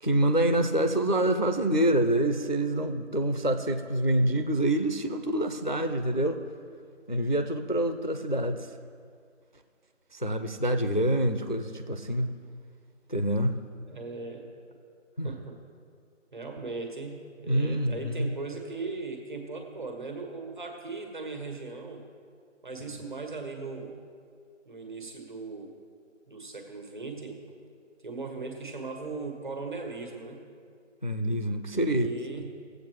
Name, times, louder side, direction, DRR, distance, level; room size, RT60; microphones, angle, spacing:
voice 1, 0.0-6.4 7.1-8.7 10.1-12.3 13.1-13.5 15.2-15.3 17.5-18.3 31.0-32.1, right 1 dB, 40° left, 7 dB, 0.4 m, -26 dB
voice 2, 13.9-14.5 15.2-15.6 16.3-22.0 22.6-23.9 24.7-25.7 26.3-27.4 28.0-30.4 31.7-32.5, right 3 dB, 40° right, 3 dB, 1.5 m, -38 dB
19.0 x 7.9 x 3.0 m, 2.2 s
figure-of-eight pair, 175°, 38 cm